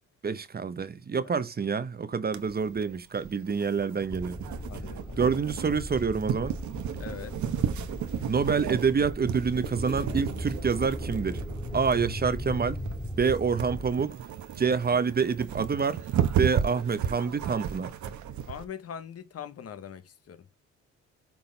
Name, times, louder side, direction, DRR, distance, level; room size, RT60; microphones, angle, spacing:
voice 1, 0.2-4.4 5.2-6.5 8.3-11.4 11.7-12.8 13.2-14.1 14.6-16.0 16.4-17.9, right 5 dB, 30° right, 0.9 m, -27 dB
sound 1, 2.3-18.6, right 9 dB, 70° right, 1.2 m, -34 dB
sound 2, 4.1-13.9, equal, 5° left, 2.1 m, -37 dB
voice 2, 4.7-5.2 7.0-7.4 18.5-20.4, left 8 dB, 50° left, 1.1 m, -41 dB
6.9 x 3.9 x 4.0 m
cardioid pair, 90°, 30 cm